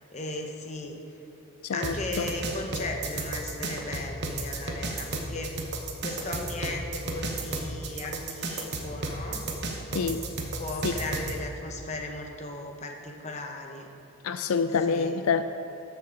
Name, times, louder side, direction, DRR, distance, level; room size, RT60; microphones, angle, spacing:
voice 1, 0.1-1.0 1.7-9.5 10.6-13.9 14.9-15.2, left 2 dB, 30° left, 2 dB, 1.0 m, -36 dB
voice 2, 1.6-2.3 9.9-10.3 10.8-11.0 14.2-15.4, left 5 dB, 90° left, 10 dB, 0.4 m, -27 dB
sound 1, 1.8-11.3, right 3 dB, 50° right, 1.1 m, -33 dB
13.5 x 6.9 x 3.9 m, 2.8 s
head